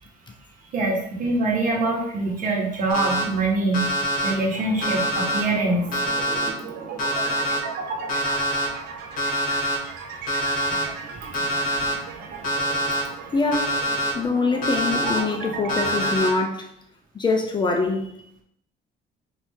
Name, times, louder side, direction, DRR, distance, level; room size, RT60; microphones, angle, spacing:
voice 1, 0.7-5.9 11.1-11.4 11.8-11.9, right 2 dB, 55° right, -1 dB, 1.3 m, -24 dB
Alarm, 2.9-3.2 3.7-4.3 4.8-5.4 5.9-6.5 7.0-7.6 8.1-8.7 9.2-9.8 10.3-10.8 11.3-11.9 12.4-13.0 13.5-14.1 14.6-15.2 15.7-16.3, equal, 55° left, 1.4 m, -25 dB
sound 1, 4.5-16.2, right 5 dB, 75° right, 0.7 m, -36 dB
voice 2, 13.3-13.8 14.1-16.7 17.1-18.1, left 3 dB, 25° left, 2 dB, 0.5 m, -24 dB
4.3 x 2.8 x 3.5 m, 0.72 s
cardioid pair, 110°, 17 cm